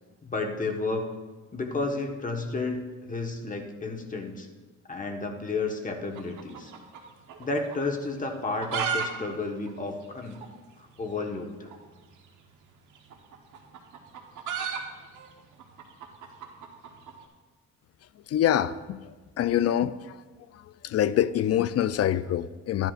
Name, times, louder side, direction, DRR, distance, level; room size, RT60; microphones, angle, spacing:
voice 1, 0.2-1.1 1.5-4.5 4.9-6.7 7.4-10.4 11.0-11.7, left 3 dB, 25° left, 3 dB, 1.3 m, -32 dB
sound 1, 6.1-7.5 7.7-7.8 8.3-9.1 9.3-9.4 9.7-9.8 10.3-10.5 11.6-11.8 12.9-17.2, right 6 dB, 80° right, 1.1 m, -33 dB
voice 2, 18.3-19.0 19.4-20.2 20.8-22.9, left 11 dB, 55° left, 15 dB, 0.4 m, -25 dB
13.0 x 10.5 x 2.5 m, 1.3 s
cardioid pair, 90°, 30 cm